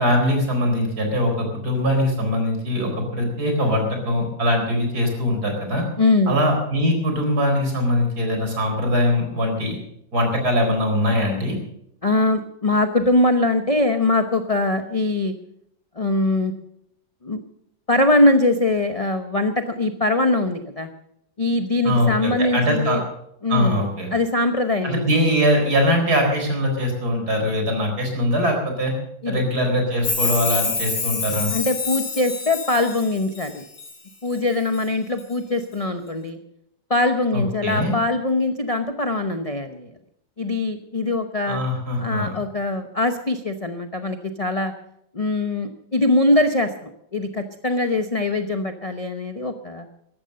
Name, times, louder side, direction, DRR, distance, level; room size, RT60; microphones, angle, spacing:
voice 1, 0.0-5.8 6.3-9.8 10.1-11.6 21.8-23.0 23.5-24.1 24.8-28.9 29.3-31.5 37.3-37.9 41.5-42.3, equal, 55° right, 3 dB, 4.7 m, -22 dB
voice 2, 6.0-6.4 12.0-15.3 16.0-16.5 17.2-17.4 17.9-20.9 21.4-23.0 23.4-25.1 29.2-29.4 31.5-33.6 34.2-36.4 36.9-39.9 40.4-41.6 42.0-44.7 45.1-49.9, left 2 dB, 35° left, 7 dB, 0.5 m, -22 dB
Chime, 30.0-33.9 34.3-34.9 35.2-35.3, left 4 dB, 85° left, 3.3 m, -27 dB
14.5 x 12.0 x 6.6 m, 0.74 s
omnidirectional pair, 2.0 m